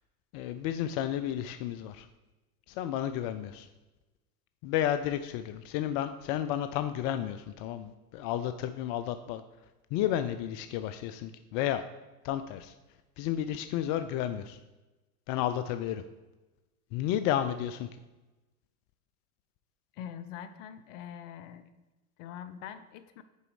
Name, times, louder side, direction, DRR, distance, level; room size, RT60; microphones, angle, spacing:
voice 1, 0.3-2.1 2.7-3.7 4.6-9.4 9.9-11.8 12.2-12.7 13.2-14.6 15.3-16.0 16.9-17.9, left 11 dB, 40° left, 10 dB, 0.4 m, -32 dB
voice 2, 19.9-21.7 22.2-23.2, left 9 dB, 60° left, 12 dB, 0.8 m, -43 dB
6.7 x 4.9 x 4.8 m, 1.1 s
hypercardioid pair, 90°, 44 cm